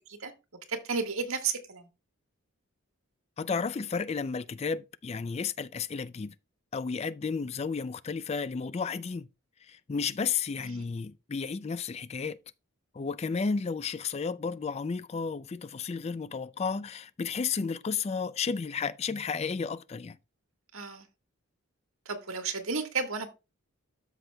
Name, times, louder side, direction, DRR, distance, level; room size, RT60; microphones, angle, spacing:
voice 1, 0.7-1.9 10.6-10.8 20.7-21.1 22.0-23.3, right 5 dB, 85° right, 1.6 m, -33 dB
voice 2, 3.4-6.3 6.7-9.3 9.7-12.4 12.9-20.2, left 5 dB, 30° left, 0.3 m, -32 dB
13.0 x 5.9 x 2.2 m
head